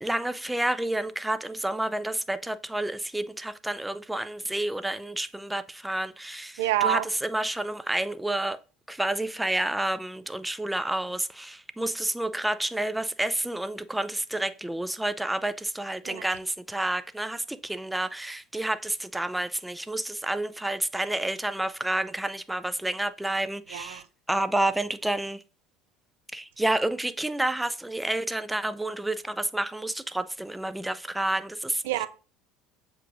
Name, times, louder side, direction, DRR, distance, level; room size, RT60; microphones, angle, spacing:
voice 1, 0.0-8.6 8.9-25.4 26.3-31.8, right 1 dB, 5° right, 0.3 m, -29 dB
voice 2, 6.6-7.0 16.0-16.2 23.7-24.0 31.9-32.1, right 11 dB, 85° right, 0.4 m, -26 dB
7.3 x 2.9 x 2.5 m
supercardioid pair, 85°, 0 cm